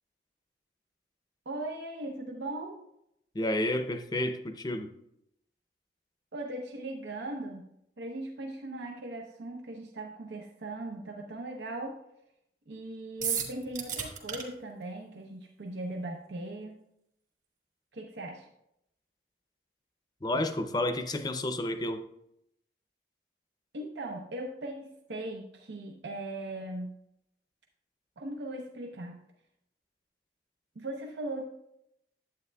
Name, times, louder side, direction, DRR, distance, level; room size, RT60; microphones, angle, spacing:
voice 1, 1.5-2.8 6.3-7.6 8.0-12.0 12.7-16.8 17.9-18.5 23.7-26.9 28.2-29.2 30.8-31.5, right 1 dB, 90° right, 2 dB, 0.7 m, -39 dB
voice 2, 3.3-4.9 20.2-22.0, left 1 dB, 25° left, 8 dB, 0.5 m, -30 dB
sound 1, 13.2-14.4, right 7 dB, 45° right, 1.4 m, -32 dB
9.5 x 8.6 x 2.2 m, 0.79 s
head